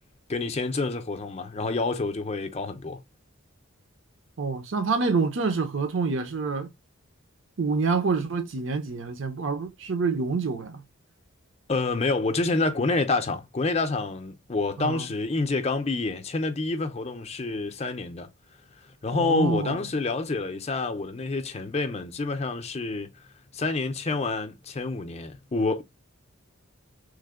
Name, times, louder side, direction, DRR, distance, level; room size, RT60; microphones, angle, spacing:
voice 1, 0.3-3.0 11.7-18.3 18.8-23.3 23.5-25.8, left 3 dB, 30° left, 0.5 m, -28 dB
voice 2, 4.4-6.7 7.6-10.8 14.8-15.1 19.1-19.8, right 4 dB, 65° right, 0.6 m, -27 dB
3.2 x 2.1 x 3.5 m
head